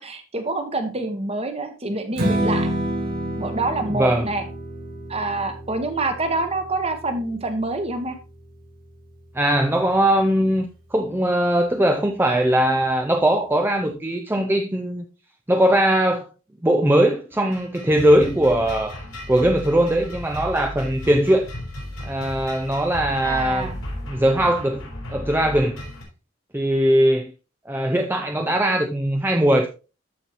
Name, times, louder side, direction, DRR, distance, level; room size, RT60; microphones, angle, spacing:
voice 1, 0.0-2.7 3.4-4.4 5.1-8.1 23.2-23.8, right 2 dB, 30° right, 1.1 m, -26 dB
Strum, 2.2-8.5, right 1 dB, 45° right, 1.9 m, -29 dB
voice 2, 3.9-4.3 9.3-15.0 15.5-16.3 16.6-19.0 19.3-21.5 22.0-23.7 24.1-25.8 26.5-27.3 27.7-29.7, right 1 dB, 10° right, 0.5 m, -20 dB
sound 1, 17.3-26.0, left 1 dB, 85° left, 4.1 m, -35 dB
13.5 x 4.5 x 3.0 m
head